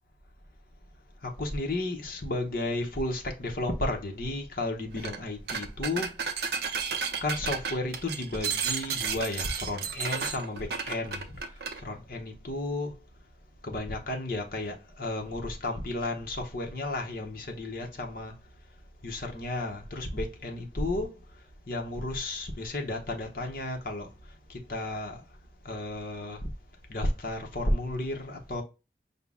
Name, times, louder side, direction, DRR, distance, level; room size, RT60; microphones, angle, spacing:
voice 1, 1.2-6.1 7.2-11.4 11.8-12.9 13.6-18.3 19.0-21.2 21.7-24.1 24.5-25.2 25.6-26.5 26.9-28.6, left 2 dB, 50° left, 0.8 m, -33 dB
sound 1, 5.0-5.2 5.5-11.8, right 6 dB, 65° right, 0.5 m, -32 dB
5.4 x 2.0 x 3.5 m
head